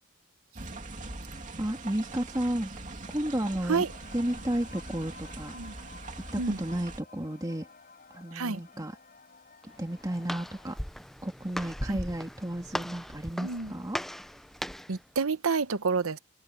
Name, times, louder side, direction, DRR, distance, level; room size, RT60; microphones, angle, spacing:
sound 1, 0.6-7.0, right 2 dB, 35° right, 2.8 m, -42 dB
voice 1, 1.6-2.7 3.1-3.8 4.1-5.6 6.3-7.7 8.1-9.0 9.6-10.8 11.2-14.0, right 1 dB, 15° right, 2.2 m, -32 dB
sound 2, 3.0-10.8, left 4 dB, 40° left, 7.6 m, -54 dB
Walk footsteps, 9.6-15.0, equal, ahead, 0.5 m, -38 dB
voice 2, 14.9-16.2, right 4 dB, 85° right, 0.9 m, -28 dB
head